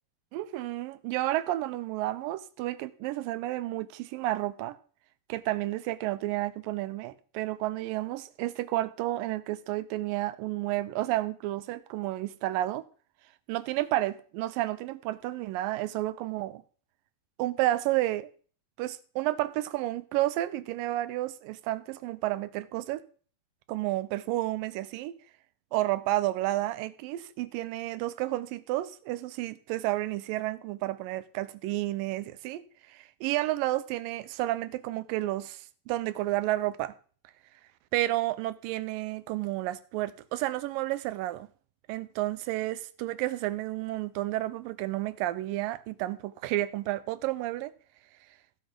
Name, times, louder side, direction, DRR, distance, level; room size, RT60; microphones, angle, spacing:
voice 1, 0.3-4.8 5.3-12.9 13.5-16.6 17.4-18.3 18.8-23.0 23.7-25.2 25.7-32.6 32.9-36.9 37.9-41.5 41.9-47.7, right 16 dB, 90° right, 2.3 m, -31 dB
15.0 x 7.7 x 3.8 m
omnidirectional pair, 3.9 m